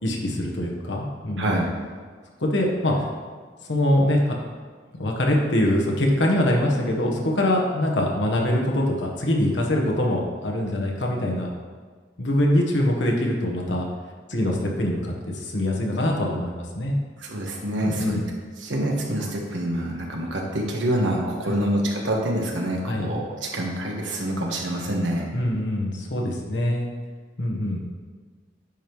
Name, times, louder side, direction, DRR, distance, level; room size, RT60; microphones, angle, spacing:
voice 1, 0.0-1.5 2.4-3.1 3.7-4.3 5.0-11.5 12.2-13.9 14.3-16.9 17.8-18.3 21.4-21.5 22.8-23.1 25.3-26.9 27.4-27.8, left 1 dB, 75° left, 0 dB, 1.2 m, -23 dB
voice 2, 17.2-18.2 18.6-25.3, right 1 dB, 90° right, 0 dB, 1.3 m, -26 dB
10.0 x 5.2 x 3.1 m, 1.5 s
head